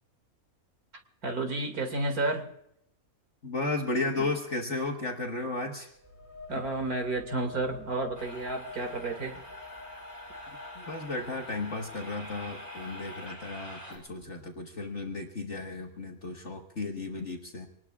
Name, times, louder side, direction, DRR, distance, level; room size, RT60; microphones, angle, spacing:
voice 1, 1.2-2.5 4.2-4.3 6.5-9.4, right 2 dB, 75° right, 5 dB, 2.7 m, -31 dB
voice 2, 3.4-5.9 10.8-17.7, left 3 dB, 50° left, 1 dB, 1.8 m, -34 dB
sound 1, 5.9-13.5, left 4 dB, 15° right, 4.9 m, -48 dB
sound 2, 8.1-14.0, left 1 dB, 45° right, 5.2 m, -45 dB
26.0 x 19.5 x 2.4 m, 0.78 s
omnidirectional pair, 1.6 m